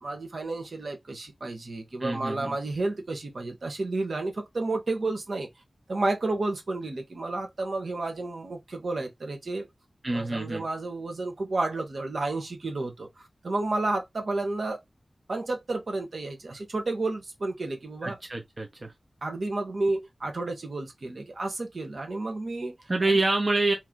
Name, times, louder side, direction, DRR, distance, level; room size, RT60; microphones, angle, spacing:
voice 1, 0.0-5.5 5.9-9.7 10.1-14.8 15.3-18.2 19.2-22.7 23.1-23.2, right 2 dB, 75° right, 1.3 m, -31 dB
voice 2, 2.0-2.6 10.0-10.6 18.0-18.9 22.9-23.7, right 2 dB, 45° right, 0.9 m, -27 dB
3.2 x 2.9 x 3.8 m
wide cardioid pair, 65°, 0 cm